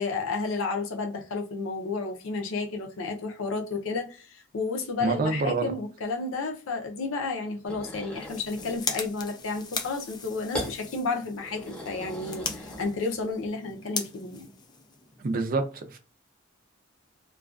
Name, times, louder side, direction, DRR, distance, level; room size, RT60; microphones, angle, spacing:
voice 1, 0.0-14.5, left 3 dB, 75° left, 0.6 m, -32 dB
voice 2, 5.0-5.7 15.2-16.0, right 3 dB, 45° right, 0.4 m, -27 dB
sound 1, 7.7-8.7 10.5-10.8 11.4-13.2, left 1 dB, 5° left, 0.8 m, -38 dB
sound 2, 8.1-15.4, left 5 dB, 20° left, 0.3 m, -39 dB
2.4 x 2.2 x 2.4 m
head